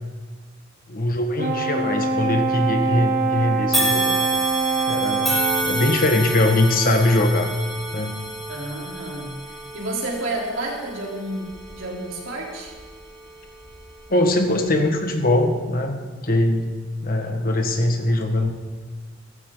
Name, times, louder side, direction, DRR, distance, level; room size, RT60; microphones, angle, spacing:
voice 1, 0.9-4.3 4.9-7.5 7.9-8.2 14.1-15.9 16.2-16.7 17.0-18.5, left 1 dB, 50° left, 4 dB, 1.7 m, -21 dB
Brass instrument, 1.4-5.8, right 4 dB, 50° right, 1.8 m, -24 dB
sound 1, 3.7-13.0 13.6-13.7 14.7-14.8, right 1 dB, ahead, 4.2 m, -29 dB
voice 2, 8.5-12.7, right 2 dB, 80° right, -2 dB, 3.7 m, -31 dB
15.0 x 14.0 x 4.0 m, 1.4 s
head